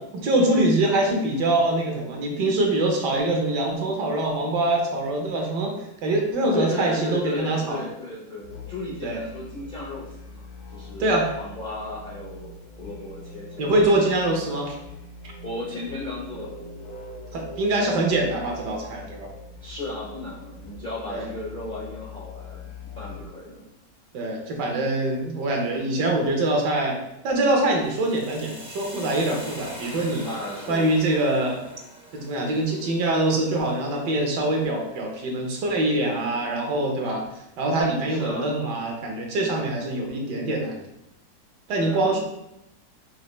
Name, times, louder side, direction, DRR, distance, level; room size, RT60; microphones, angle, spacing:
voice 1, 0.0-7.8 9.0-9.2 11.0-11.3 13.6-14.8 17.3-19.3 21.1-21.3 24.1-30.3 30.7-31.6 32.1-40.8 41.7-42.2, right 2 dB, 75° right, 1 dB, 1.4 m, -24 dB
voice 2, 6.5-10.4 10.7-13.7 14.0-14.6 15.4-16.6 19.6-22.6 23.0-23.7 30.2-31.0 38.1-38.5 41.7-42.2, left 2 dB, 50° left, -6 dB, 0.5 m, -35 dB
Musical instrument, 8.4-23.4, left 3 dB, 90° left, 1.4 m, -42 dB
sound 1, 27.7-35.7, equal, 5° right, 0.4 m, -44 dB
5.4 x 2.5 x 3.1 m, 0.86 s
omnidirectional pair, 1.9 m